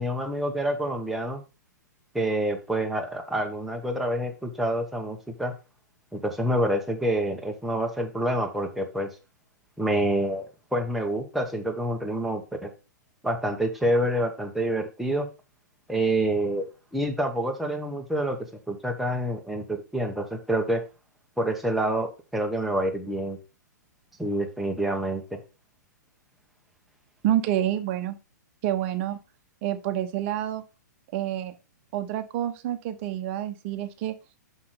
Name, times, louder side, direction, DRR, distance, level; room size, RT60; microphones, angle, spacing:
voice 1, 0.0-1.4 2.1-5.5 6.1-9.1 9.8-10.4 10.7-12.7 13.2-15.3 15.9-16.7 16.9-18.4 18.7-20.8 21.4-23.4 24.2-25.4, right 1 dB, ahead, 2 dB, 1.4 m, -27 dB
voice 2, 27.2-28.2 28.6-29.2 29.6-30.6 31.1-31.5 31.9-34.1, right 12 dB, 40° right, 9 dB, 1.1 m, -28 dB
6.5 x 5.8 x 3.8 m, 0.29 s
figure-of-eight pair, 110°, 10 cm